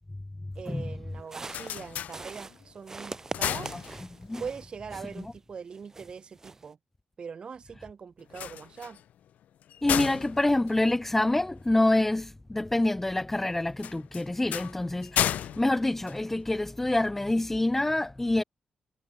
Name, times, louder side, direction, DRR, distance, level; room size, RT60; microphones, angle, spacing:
voice 1, 0.5-3.8 4.4-6.8 7.2-9.0, right 6 dB, 40° right, 7.3 m, -41 dB
sound 1, 1.2-2.7 3.1-4.4 8.2-11.7 13.8-16.8, left 10 dB, 85° left, 1.1 m, -34 dB
sound 2, 1.2-5.4 5.7-6.7, right 3 dB, 20° right, 7.7 m, -43 dB
voice 2, 9.8-18.4, left 2 dB, 10° left, 0.7 m, -26 dB
wide cardioid pair, 170°, 3 cm